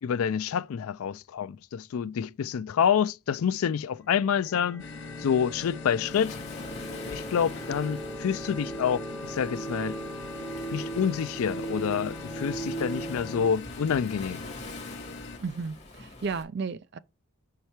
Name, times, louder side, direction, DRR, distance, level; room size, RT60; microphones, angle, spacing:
voice 1, 0.0-4.8 5.2-6.4 6.9-10.0 10.7-14.4, left 7 dB, 75° left, 0.4 m, -28 dB
sound 1, 3.9-13.5, right 2 dB, ahead, 1.1 m, -38 dB
sound 2, 4.8-15.4, left 3 dB, 55° left, 0.7 m, -43 dB
Waves surf, 6.1-16.4, left 2 dB, 30° left, 1.7 m, -45 dB
voice 2, 15.4-17.0, right 5 dB, 50° right, 0.4 m, -33 dB
5.6 x 4.7 x 4.3 m
head